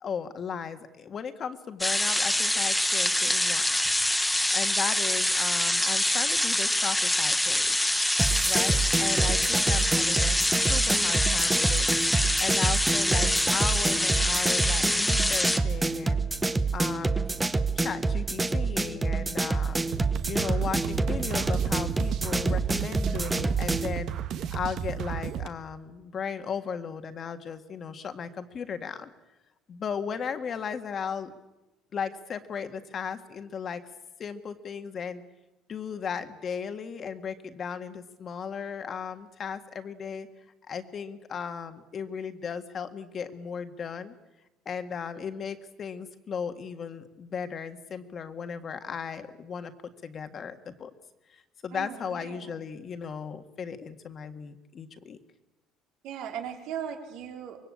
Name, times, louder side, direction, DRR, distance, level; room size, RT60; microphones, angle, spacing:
voice 1, 0.0-3.6 4.5-7.9 8.5-10.4 10.7-11.9 12.4-16.3 16.7-17.2 17.8-19.9 20.3-24.1 24.5-29.1 29.7-31.3 31.9-33.8 34.2-35.2 35.7-40.3 40.7-44.1 44.7-49.7 50.0-50.9 51.3-55.2, left 6 dB, 35° left, 8 dB, 1.8 m, -36 dB
sound 1, 1.8-15.6, left 1 dB, 5° left, 1.3 m, -25 dB
sound 2, 8.2-23.9, right 3 dB, 10° right, 1.0 m, -27 dB
sound 3, 19.9-25.5, right 9 dB, 55° right, 1.4 m, -33 dB
voice 2, 51.7-52.6 56.0-57.6, right 8 dB, 70° right, 3 dB, 3.9 m, -38 dB
25.0 x 22.5 x 8.6 m, 1.0 s
cardioid pair, 145°, 0 cm